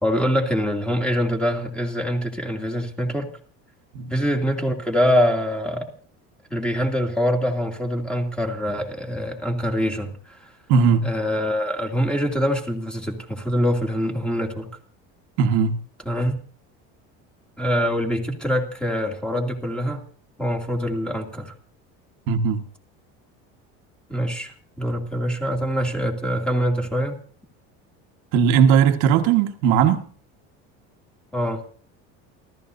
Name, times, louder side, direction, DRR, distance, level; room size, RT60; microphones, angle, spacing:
voice 1, 0.0-3.3 4.1-5.9 6.5-10.5 11.0-14.7 16.0-16.4 17.6-20.0 20.4-21.5 24.1-27.2 31.3-31.6, equal, 5° left, 2.5 m, -24 dB
voice 2, 10.7-11.0 15.4-15.8 22.3-22.6 28.3-30.0, right 7 dB, 75° right, 1.6 m, -18 dB
29.5 x 13.5 x 2.7 m
cardioid pair, 150°, 30 cm